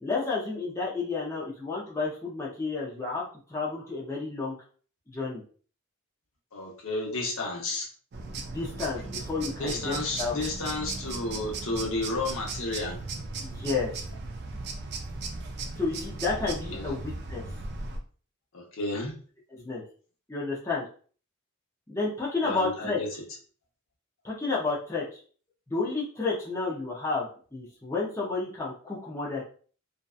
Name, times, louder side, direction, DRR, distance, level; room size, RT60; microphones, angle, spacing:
voice 1, 0.0-3.2 3.5-4.6 5.1-5.4 8.3-10.3 13.4-13.9 15.8-17.4 19.5-19.8 20.3-20.8 21.9-23.0 24.2-25.2 25.7-29.4, left 3 dB, 15° left, -5 dB, 0.5 m, -31 dB
voice 2, 6.5-7.9 9.6-13.2 16.7-16.9 18.5-19.1 22.4-23.1, left 2 dB, 65° left, -1 dB, 0.8 m, -32 dB
sound 1, 8.1-18.0, right 3 dB, 50° right, 0.4 m, -37 dB
2.6 x 2.2 x 2.3 m, 0.42 s
head